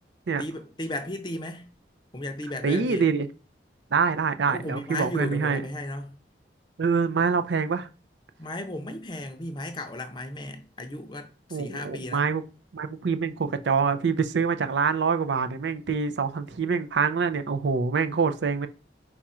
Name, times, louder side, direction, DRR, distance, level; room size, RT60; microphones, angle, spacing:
voice 1, 0.4-1.7 2.1-3.1 4.5-6.2 8.4-12.2, left 1 dB, 25° left, 0.5 m, -35 dB
voice 2, 2.6-3.3 3.9-5.6 6.8-7.9 11.5-12.4 12.7-18.7, right 5 dB, 80° right, 0.5 m, -25 dB
4.7 x 2.4 x 4.2 m
head